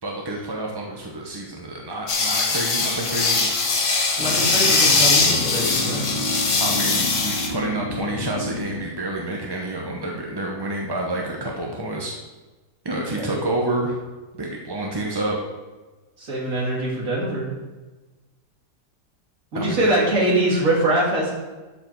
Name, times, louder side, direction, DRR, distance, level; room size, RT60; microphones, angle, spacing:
voice 1, 0.0-3.5 6.6-12.1 12.8-14.0 14.4-15.4 19.5-19.9 20.3-20.6, right 2 dB, 25° right, -1 dB, 0.6 m, -28 dB
sound 1, 2.1-7.5, left 3 dB, 70° left, 1.8 m, -21 dB
sound 2, 4.2-8.9, left 2 dB, 85° left, 2.3 m, -31 dB
voice 2, 4.2-6.1 13.1-13.3 16.2-17.5 19.5-21.3, right 1 dB, 55° right, -3 dB, 2.6 m, -23 dB
12.5 x 5.0 x 4.6 m, 1.2 s
omnidirectional pair, 1.8 m